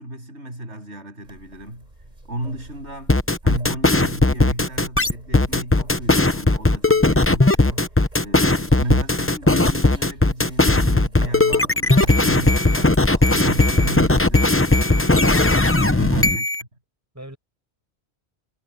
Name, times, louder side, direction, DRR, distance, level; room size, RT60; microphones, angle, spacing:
voice 1, 0.0-1.9 2.3-3.2 3.4-15.3 15.8-16.5, right 1 dB, 90° right, 8.0 m, -34 dB
sound 1, 1.2-15.7, right 1 dB, 40° right, 4.1 m, -44 dB
sound 2, 3.1-16.6, left 2 dB, 15° left, 0.7 m, -17 dB
voice 2, 15.9-16.3 17.1-17.4, right 1 dB, 15° right, 5.5 m, -37 dB
omnidirectional pair, 1.1 m